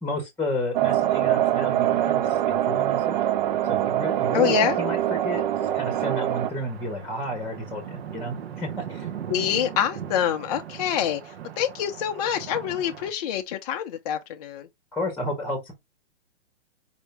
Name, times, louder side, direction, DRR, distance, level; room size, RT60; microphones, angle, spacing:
voice 1, 0.0-3.2 3.7-9.1 14.9-15.7, left 1 dB, 5° left, 1.0 m, -32 dB
sound 1, 0.7-6.5, right 12 dB, 45° right, 0.5 m, -24 dB
sound 2, 3.8-13.1, right 9 dB, 65° right, 1.0 m, -40 dB
voice 2, 4.3-4.8 9.3-14.7, left 9 dB, 35° left, 0.5 m, -26 dB
4.9 x 2.7 x 3.4 m
hypercardioid pair, 140°, 35 cm